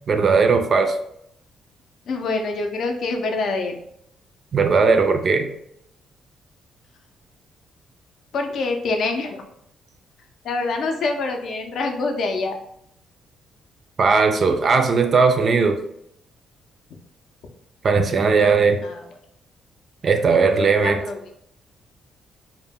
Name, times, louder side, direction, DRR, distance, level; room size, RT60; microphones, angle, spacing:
voice 1, 0.1-1.0 4.5-5.5 14.0-15.8 17.8-18.8 20.0-21.0, right 4 dB, 45° right, 6 dB, 0.3 m, -18 dB
voice 2, 2.1-3.8 8.3-9.4 10.4-12.6 18.8-19.0 20.8-21.2, left 3 dB, 65° left, 4 dB, 0.4 m, -25 dB
2.1 x 2.0 x 3.4 m, 0.74 s
cardioid pair, 90°, 0 cm